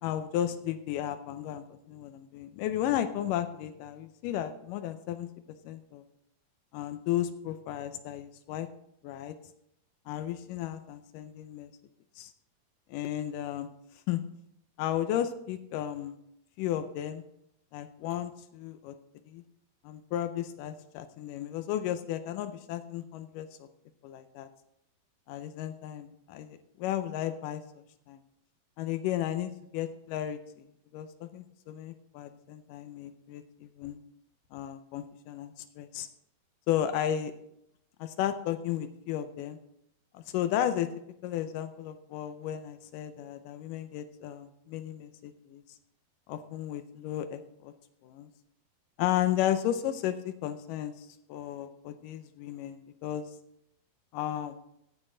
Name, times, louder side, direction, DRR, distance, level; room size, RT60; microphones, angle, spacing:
voice 1, 0.0-5.3 5.7-6.0 6.7-8.7 9.0-9.4 10.1-11.7 12.2-12.3 12.9-13.7 14.1-14.2 14.8-16.2 16.6-17.2 17.7-19.0 19.3-19.4 19.8-23.7 24.0-24.5 25.3-28.2 28.8-30.4 30.9-34.0 34.5-36.1 36.7-37.3 38.0-39.6 40.1-40.9 41.2-45.6 46.3-47.7 48.0-48.3 49.0-53.3 54.1-54.6, left 11 dB, 85° left, 9 dB, 1.9 m, -34 dB
16.0 x 8.0 x 3.8 m, 0.77 s
omnidirectional pair, 4.5 m